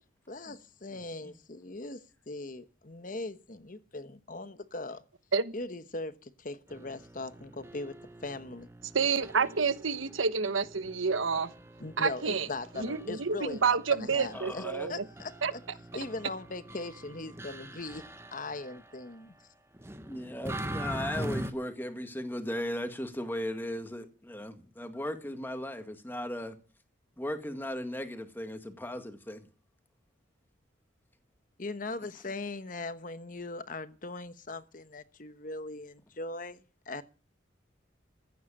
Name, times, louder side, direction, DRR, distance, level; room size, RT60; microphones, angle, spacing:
voice 1, 0.3-5.0 5.5-8.7 11.8-15.6 15.9-19.3 31.6-37.0, left 2 dB, 40° left, 1.1 m, -40 dB
voice 2, 0.9-1.3 14.3-14.9 20.1-26.6 27.2-29.5, left 1 dB, 10° left, 1.7 m, -37 dB
sound 1, 6.7-19.1 19.7-21.5, right 1 dB, 15° right, 1.0 m, -43 dB
voice 3, 8.9-11.5 12.0-12.5 12.8-15.0 15.4-15.5, right 5 dB, 85° right, 1.1 m, -29 dB
15.0 x 9.4 x 7.4 m
head